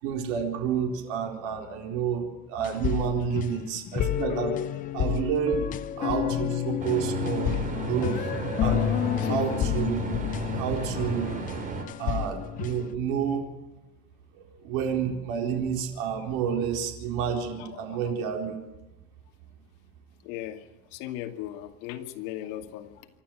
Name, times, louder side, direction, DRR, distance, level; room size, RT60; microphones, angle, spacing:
voice 1, 0.0-4.6 4.9-5.7 6.0-7.6 7.8-8.3 8.6-8.8 9.3-10.0 10.5-11.5 12.0-13.5 14.3-18.7, right 7 dB, 60° right, 3 dB, 4.3 m, -29 dB
sound 1, 2.6-12.9, left 10 dB, 25° left, 0.7 m, -30 dB
sound 2, 6.8-11.8, right 4 dB, 25° right, 3.9 m, -34 dB
voice 2, 9.2-9.6 17.5-18.1 20.2-23.1, left 13 dB, 55° left, 5 dB, 2.4 m, -37 dB
27.0 x 13.0 x 7.8 m, 1.1 s
supercardioid pair, 165°, 31 cm